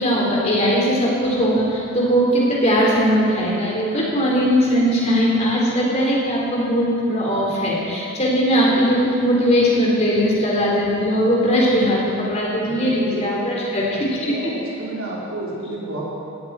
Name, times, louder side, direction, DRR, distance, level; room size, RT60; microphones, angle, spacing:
voice 1, 0.0-14.4, equal, 30° left, -4 dB, 4.0 m, -19 dB
voice 2, 12.5-13.8 14.3-16.0, right 1 dB, 75° right, -6 dB, 4.7 m, -31 dB
17.0 x 8.3 x 9.7 m, 2.8 s
head